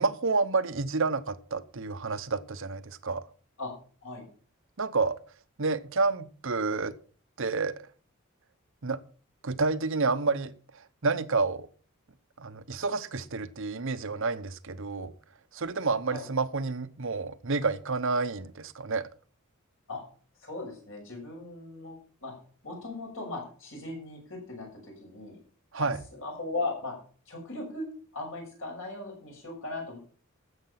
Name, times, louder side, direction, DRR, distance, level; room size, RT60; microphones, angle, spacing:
voice 1, 0.0-3.2 4.8-5.2 5.6-6.9 7.4-7.7 8.8-9.0 9.4-10.5 11.0-11.7 12.4-15.1 15.5-19.0 25.7-26.0, right 4 dB, 65° right, 0.9 m, -29 dB
voice 2, 20.4-21.9 22.2-22.4 22.6-25.4 25.8-27.0 27.3-30.0, left 2 dB, 65° left, 6.4 m, -38 dB
13.5 x 8.1 x 5.8 m
head